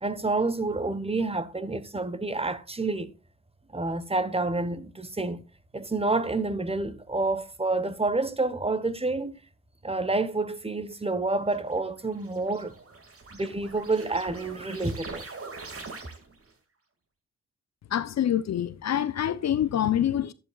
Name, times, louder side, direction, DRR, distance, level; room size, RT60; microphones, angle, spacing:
voice 1, 0.0-3.1 3.7-5.4 5.7-9.3 9.8-12.7 13.3-15.3, right 3 dB, 15° right, 1.2 m, -28 dB
sound 1, 11.6-16.5, right 3 dB, 40° right, 2.3 m, -43 dB
voice 2, 17.9-20.3, left 10 dB, 50° left, 0.7 m, -26 dB
11.5 x 10.5 x 2.4 m
hypercardioid pair, 40°, 34 cm